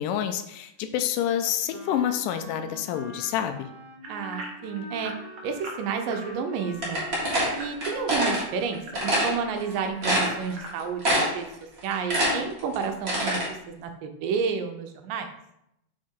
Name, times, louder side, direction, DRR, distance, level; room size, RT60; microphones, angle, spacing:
voice 1, 0.0-3.7, left 10 dB, 85° left, 8 dB, 2.1 m, -28 dB
Wind instrument woodwind instrument, 1.7-10.7, left 1 dB, 30° left, 0.9 m, -44 dB
sound 1, 4.0-9.5 9.9-11.4 11.9-12.0 12.5-12.6, right 2 dB, 65° right, 1.2 m, -42 dB
voice 2, 4.1-5.1 5.4-7.0 7.6-11.5 11.8-13.4 13.8-15.3, right 6 dB, 85° right, 6 dB, 2.4 m, -30 dB
sound 2, 6.8-8.4 8.9-9.3 9.7-9.8 10.0-10.7 11.0-11.5 11.8-13.5, equal, 30° right, 1.3 m, -24 dB
5.6 x 4.7 x 4.4 m, 0.80 s
omnidirectional pair, 3.9 m